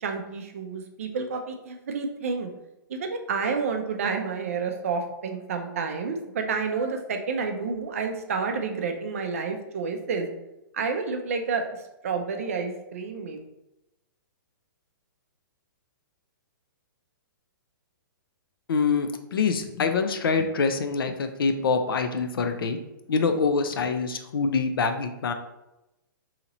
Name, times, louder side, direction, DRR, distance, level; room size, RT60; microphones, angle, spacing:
voice 1, 0.0-2.5 2.9-10.3 10.7-11.6 12.0-13.4, right 5 dB, 40° right, 4 dB, 0.4 m, -29 dB
voice 2, 18.7-22.8 23.1-25.3, left 4 dB, 80° left, 7 dB, 0.5 m, -25 dB
4.0 x 2.8 x 2.9 m, 0.93 s
hypercardioid pair, 180°, 12 cm